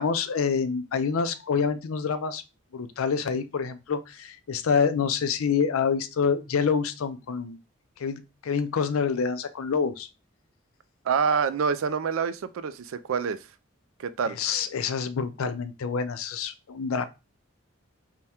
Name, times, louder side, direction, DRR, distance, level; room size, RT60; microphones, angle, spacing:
voice 1, 0.0-2.4 2.7-7.6 8.0-10.1 14.4-17.0, left 6 dB, 90° left, 0.5 m, -27 dB
voice 2, 11.0-13.4 14.0-14.4, right 6 dB, 80° right, 0.4 m, -26 dB
3.5 x 2.2 x 4.2 m
head